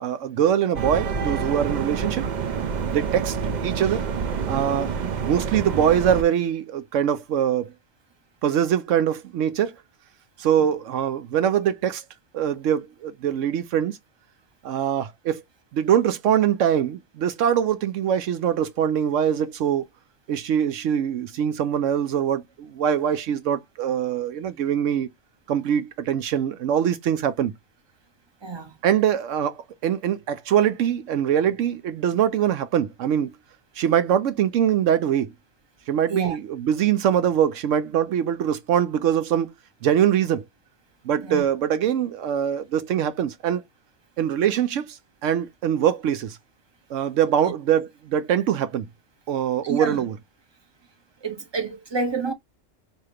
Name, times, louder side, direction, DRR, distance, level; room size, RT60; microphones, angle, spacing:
voice 1, 0.0-2.2 2.8-3.4 3.6-4.0 4.5-7.7 8.4-9.8 10.4-12.0 12.3-14.0 14.6-15.4 15.7-19.9 20.3-25.1 25.5-27.5 28.8-33.3 33.8-35.3 35.9-39.5 39.8-40.4 41.1-43.6 44.2-46.4 46.9-48.9 49.3-50.1, right 9 dB, 75° right, 0.9 m, -23 dB
sound 1, 0.7-6.2, right 6 dB, 55° right, 0.5 m, -27 dB
voice 2, 28.4-28.8 36.1-36.4 41.2-41.4 49.6-50.0 51.2-52.3, right 4 dB, 25° right, 1.0 m, -29 dB
4.9 x 2.7 x 2.8 m
omnidirectional pair, 1.3 m